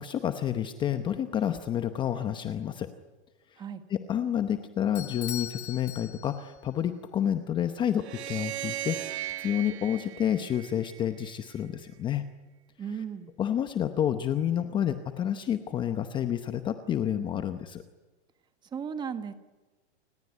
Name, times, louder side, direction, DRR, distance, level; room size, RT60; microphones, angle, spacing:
voice 1, 0.0-2.9 3.5-3.6 3.9-12.2 13.4-17.8, left 10 dB, 15° left, 9 dB, 0.8 m, -29 dB
Bell / Doorbell, 4.9-6.7, left 11 dB, 70° left, 2.6 m, -40 dB
sound 1, 7.9-11.2, right 13 dB, 65° right, 1.8 m, -37 dB
voice 2, 12.8-13.3 18.7-19.3, right 7 dB, 10° right, 11 dB, 1.3 m, -35 dB
29.0 x 18.0 x 9.6 m, 1.2 s
hypercardioid pair, 160°, 35 cm